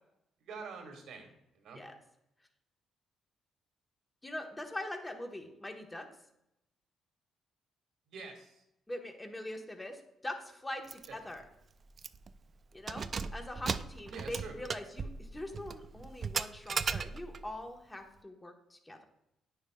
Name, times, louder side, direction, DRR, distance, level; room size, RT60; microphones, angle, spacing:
voice 1, 0.5-1.8 8.1-8.6 11.1-11.2 14.1-14.5, right 4 dB, 80° right, 2 dB, 1.9 m, -46 dB
voice 2, 4.2-6.0 8.9-11.4 12.7-19.0, left 1 dB, 15° left, 4 dB, 1.2 m, -43 dB
Keys jangling, 10.9-11.1 11.4-11.5 12.0-12.3 12.7-17.5, right 5 dB, 45° right, 0.3 m, -37 dB
9.6 x 6.7 x 2.3 m, 0.82 s
cardioid pair, 90°, 0 cm